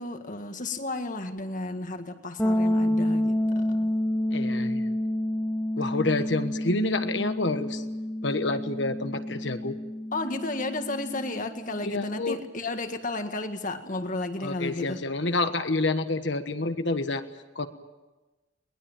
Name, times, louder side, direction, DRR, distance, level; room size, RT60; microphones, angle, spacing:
voice 1, 0.0-3.9 10.1-15.1, left 2 dB, 45° left, 7 dB, 1.8 m, -33 dB
sound 1, 2.4-12.1, left 1 dB, 10° left, 1.3 m, -29 dB
voice 2, 4.3-4.9 5.8-7.8 8.2-9.8 11.8-12.4 14.4-17.2 17.5-17.7, left 2 dB, 65° left, 9 dB, 1.4 m, -28 dB
22.0 x 19.5 x 9.0 m, 1.2 s
head